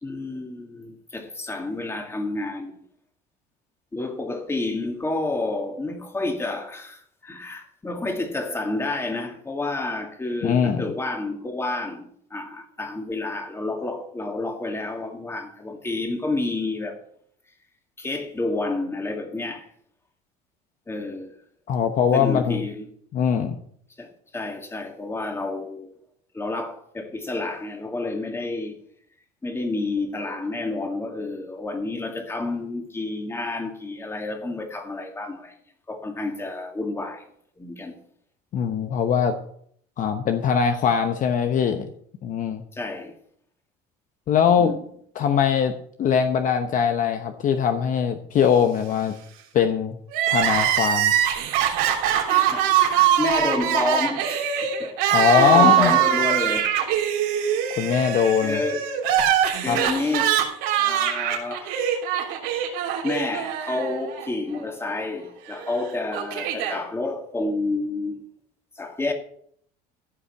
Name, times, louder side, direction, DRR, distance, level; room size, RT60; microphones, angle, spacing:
voice 1, 0.0-2.8 3.9-17.0 18.0-19.7 20.9-21.3 22.1-22.9 24.0-25.9 26.3-28.8 29.4-35.5 35.9-37.2 37.6-38.0 42.7-43.1 44.6-44.8 52.3-56.7 57.4-57.5 58.4-58.9 59.6-60.4 60.8-61.9 63.0-68.2 68.8-69.1, left 2 dB, 15° left, 2.2 m, -29 dB
voice 2, 10.4-10.8 21.7-22.6 23.1-23.6 38.5-39.3 40.0-41.9 42.2-42.6 44.3-44.7 45.1-45.7 46.0-49.1 49.5-50.0 50.3-51.1 55.1-55.9 57.7-58.6 59.6-59.8, left 7 dB, 45° left, 1.0 m, -21 dB
Crying sobbing, 50.1-64.3 64.5-64.6 65.6-66.8, right 10 dB, 85° right, 3.4 m, -23 dB
15.0 x 5.6 x 7.1 m
cardioid pair, 125°, 18 cm